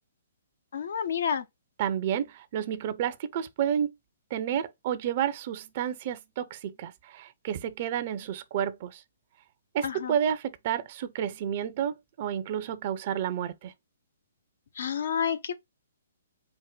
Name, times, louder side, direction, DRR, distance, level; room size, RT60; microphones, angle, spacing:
voice 1, 0.7-1.4 9.8-10.1 14.8-15.5, left 7 dB, 60° left, 0.6 m, -29 dB
voice 2, 1.8-3.9 4.3-9.0 9.7-13.7, right 9 dB, 40° right, 0.6 m, -30 dB
4.6 x 2.1 x 3.9 m
figure-of-eight pair, 125°, 0 cm